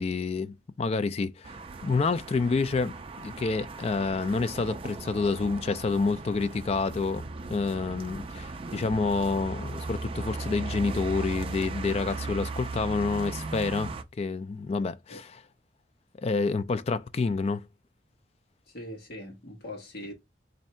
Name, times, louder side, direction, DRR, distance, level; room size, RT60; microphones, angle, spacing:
voice 1, 0.0-1.5 1.8-7.2 7.5-13.9 14.2-15.3 16.2-17.6, left 4 dB, 35° left, 0.3 m, -28 dB
sound 1, 1.4-14.0, right 3 dB, 30° right, 0.4 m, -37 dB
voice 2, 18.7-20.1, left 1 dB, 60° left, 1.2 m, -41 dB
3.2 x 2.7 x 4.2 m
head